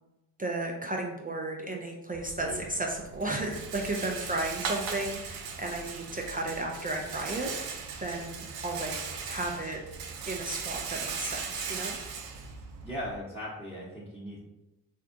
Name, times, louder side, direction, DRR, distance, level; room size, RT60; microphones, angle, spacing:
voice 1, 0.4-8.9 9.3-9.8 10.2-12.0, right 2 dB, 20° right, 0 dB, 0.4 m, -34 dB
Rattle, 2.1-13.2, right 5 dB, 80° right, 0.6 m, -38 dB
voice 2, 12.8-14.4, equal, 5° right, -7 dB, 0.9 m, -38 dB
3.4 x 2.4 x 2.6 m, 0.96 s
hypercardioid pair, 45°, 45 cm